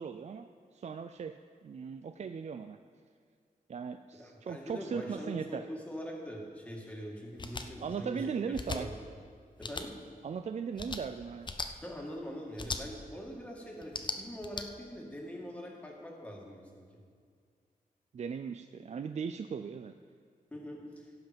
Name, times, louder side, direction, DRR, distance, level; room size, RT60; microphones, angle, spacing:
voice 1, 0.0-1.4 1.6-2.8 3.7-5.6 7.8-8.9 10.2-11.5 18.1-19.9, right 6 dB, 50° right, 8 dB, 0.4 m, -38 dB
voice 2, 4.2-8.9 9.6-9.9 11.8-16.9 20.5-21.0, equal, 10° left, -2 dB, 2.0 m, -43 dB
sound 1, 7.4-7.7 8.5-8.8 9.6-9.9 10.8-11.0 11.4-11.7 12.6-12.8 13.8-14.6, left 4 dB, 30° left, 0.6 m, -37 dB
17.0 x 5.8 x 5.2 m, 2.1 s
wide cardioid pair, 130°, 15 cm